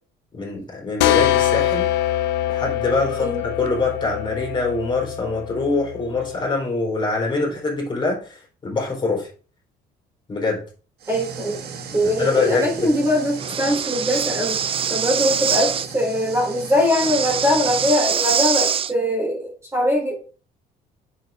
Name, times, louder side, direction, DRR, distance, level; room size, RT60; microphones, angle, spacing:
voice 1, 0.3-1.9 2.5-3.3 3.6-9.3 10.3-10.6 12.0-12.7, left 3 dB, 30° left, -1 dB, 4.0 m, -24 dB
sound 1, 1.0-6.5, left 13 dB, 85° left, 0.8 m, -23 dB
sound 2, 11.0-18.0, right 6 dB, 70° right, 1.8 m, -36 dB
voice 2, 11.1-11.6 11.9-14.6 14.9-20.1, left 1 dB, 15° right, -1 dB, 3.4 m, -21 dB
Breathing, 13.4-15.9 16.8-18.9, right 8 dB, 35° right, 0.4 m, -24 dB
7.7 x 6.7 x 3.6 m, 0.39 s
cardioid pair, 110°, 17 cm